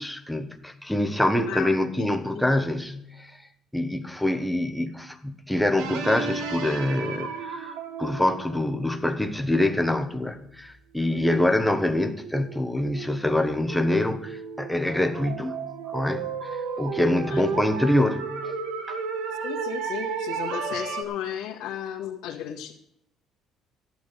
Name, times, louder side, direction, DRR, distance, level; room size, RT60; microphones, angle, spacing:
voice 1, 0.0-3.4 3.7-18.5 18.9-19.0, left 1 dB, 5° left, 7 dB, 1.2 m, -25 dB
sound 1, 5.8-9.3 11.0-11.1 11.6-21.0, right 5 dB, 85° right, 1.8 m, -33 dB
voice 2, 17.1-17.4 19.4-22.7, left 10 dB, 85° left, -3 dB, 1.9 m, -34 dB
14.0 x 11.0 x 5.2 m, 0.77 s
cardioid pair, 155°, 0 cm